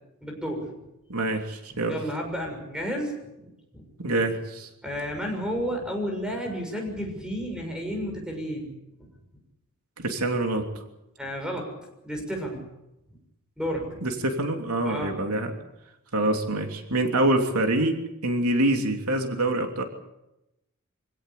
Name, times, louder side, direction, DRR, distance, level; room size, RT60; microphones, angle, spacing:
voice 1, 0.2-0.7 1.7-3.8 4.8-8.7 11.2-11.7 12.0-12.6 13.6-14.0 14.8-15.2, equal, 5° right, 2 dB, 6.6 m, -32 dB
voice 2, 1.1-2.0 4.0-4.7 10.0-10.7 14.0-15.5 16.1-19.8, right 1 dB, 85° right, 4 dB, 3.0 m, -25 dB
26.0 x 17.0 x 8.4 m, 0.89 s
head